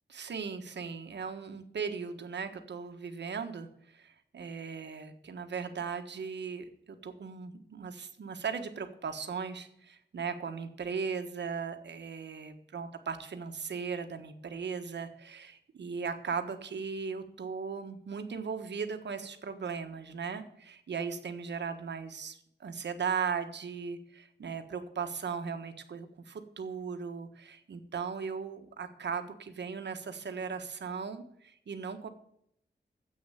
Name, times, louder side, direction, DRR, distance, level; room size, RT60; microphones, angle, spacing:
voice 1, 0.1-32.1, right 6 dB, 85° right, 7 dB, 1.5 m, -38 dB
10.0 x 7.9 x 8.5 m, 0.73 s
wide cardioid pair, 125°, 18 cm